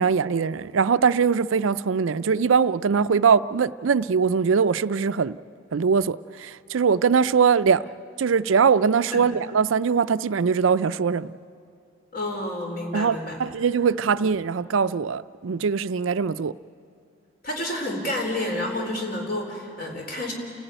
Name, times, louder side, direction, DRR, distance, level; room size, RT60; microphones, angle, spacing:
voice 1, 0.0-5.4 5.7-7.8 8.2-11.3 12.9-16.5, right 6 dB, 75° right, 0.5 m, -22 dB
voice 2, 12.1-13.4 14.0-14.1 17.4-20.3, left 1 dB, 45° left, 3.8 m, -29 dB
30.0 x 14.5 x 9.0 m
head